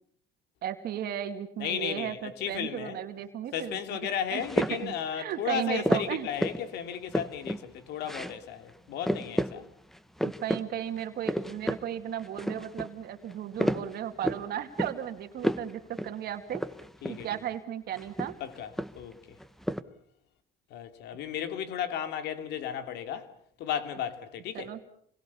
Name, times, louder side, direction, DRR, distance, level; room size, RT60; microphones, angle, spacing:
voice 1, 0.6-6.3 10.2-16.6 17.1-18.3 24.5-24.8, right 10 dB, 65° right, 2.3 m, -35 dB
voice 2, 1.6-3.0 3.5-9.6 17.0-17.3 18.4-18.7 19.0-19.1 20.7-23.3 23.6-24.7, left 9 dB, 80° left, 2.8 m, -34 dB
sound 1, 4.4-4.9 5.8-6.7 6.9-7.6 8.0-8.4 8.7-8.8 9.0-9.6 9.9-10.6 11.0-11.8 12.2-12.9 13.3-14.5 14.8-15.1 15.4-15.7 16.0-16.1 16.5-17.3 17.9-19.1 19.4-19.8, equal, ahead, 1.2 m, -31 dB
28.5 x 22.0 x 7.1 m
cardioid pair, 110°, 17 cm